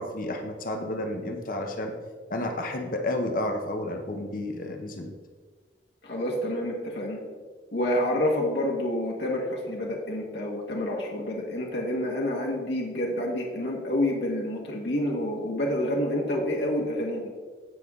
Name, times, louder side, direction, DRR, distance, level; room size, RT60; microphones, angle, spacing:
voice 1, 0.0-1.9 2.3-5.2, left 1 dB, 50° left, 4 dB, 0.9 m, -31 dB
voice 2, 6.0-7.2 7.7-17.3, left 1 dB, 75° left, -2 dB, 1.6 m, -28 dB
15.5 x 5.5 x 3.7 m, 1.5 s
head